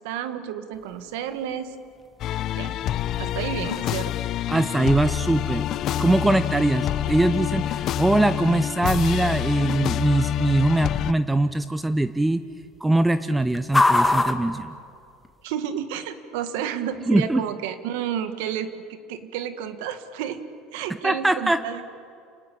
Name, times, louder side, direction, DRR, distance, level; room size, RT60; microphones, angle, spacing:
voice 1, 0.0-1.8 2.5-2.7 3.2-4.1 15.4-20.4 20.7-21.8, right 9 dB, 80° right, 9 dB, 1.8 m, -31 dB
sound 1, 0.7-15.6, left 2 dB, 10° left, 1.8 m, -32 dB
sound 2, 2.2-11.1, left 12 dB, 55° left, 0.7 m, -27 dB
voice 2, 4.5-5.6 6.0-12.4 12.8-14.8 17.1-17.4 21.0-21.6, right 2 dB, 10° right, 12 dB, 0.8 m, -22 dB
29.0 x 19.0 x 8.6 m, 2.3 s
supercardioid pair, 95°, 0 cm